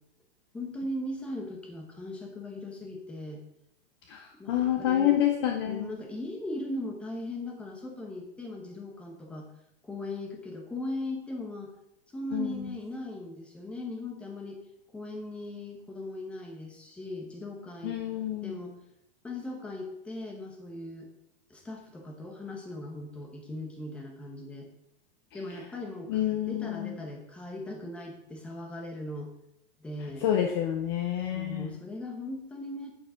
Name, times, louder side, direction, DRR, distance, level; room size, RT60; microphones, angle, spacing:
voice 1, 0.5-3.4 4.4-5.2 5.7-9.5 9.8-11.7 12.1-14.6 14.9-18.0 18.4-18.8 19.2-21.1 21.5-24.7 25.3-29.3 29.8-30.2 31.3-32.9, left 1 dB, 5° left, 2 dB, 0.9 m, -38 dB
voice 2, 4.1-6.0 12.3-12.7 17.8-18.6 26.1-27.0 30.2-31.7, left 11 dB, 25° left, 4 dB, 0.6 m, -28 dB
8.7 x 6.8 x 5.0 m, 0.80 s
supercardioid pair, 175°, 29 cm